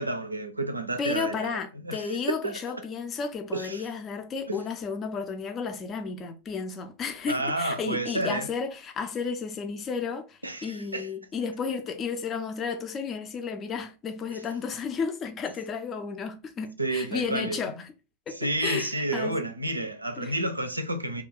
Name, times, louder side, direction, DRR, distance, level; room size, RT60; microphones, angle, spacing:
voice 1, 0.0-2.6 3.5-3.8 4.5-4.6 7.3-8.5 10.4-11.1 16.8-17.6 18.3-21.2, right 2 dB, 85° right, 0.4 m, -30 dB
voice 2, 1.0-17.8 18.3-19.4 20.2-20.3, left 5 dB, 25° left, 0.4 m, -33 dB
2.3 x 2.2 x 3.5 m
figure-of-eight pair, 90°, 0 cm